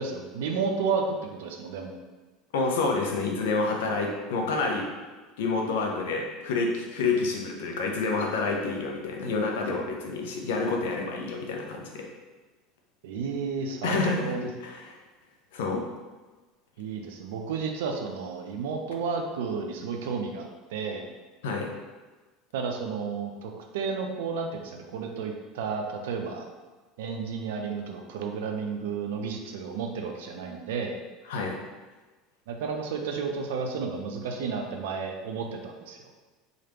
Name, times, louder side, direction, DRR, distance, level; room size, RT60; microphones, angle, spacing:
voice 1, 0.0-2.0 13.0-14.5 16.8-21.1 22.5-26.5 27.0-31.0 32.5-36.0, right 5 dB, 70° right, 3 dB, 0.4 m, -32 dB
voice 2, 2.5-4.9 5.4-12.1 13.8-14.3 14.6-14.9 15.5-15.9 21.4-21.7 31.3-31.6, left 3 dB, 70° left, 1 dB, 0.5 m, -28 dB
3.1 x 2.4 x 2.9 m, 1.3 s
hypercardioid pair, 75°, 0 cm